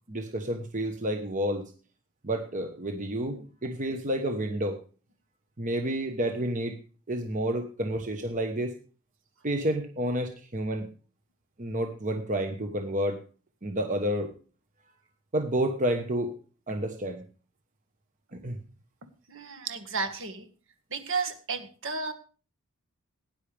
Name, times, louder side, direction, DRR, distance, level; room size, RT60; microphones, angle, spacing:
voice 1, 0.1-1.7 2.2-4.8 5.6-6.8 7.1-8.8 9.4-10.9 11.6-13.2 13.6-14.3 15.3-16.4 16.7-17.2 18.3-18.6, right 1 dB, 35° right, 5 dB, 1.2 m, -30 dB
voice 2, 19.3-20.5 20.9-22.1, right 4 dB, 60° right, 6 dB, 1.8 m, -33 dB
18.0 x 10.0 x 3.5 m, 0.37 s
head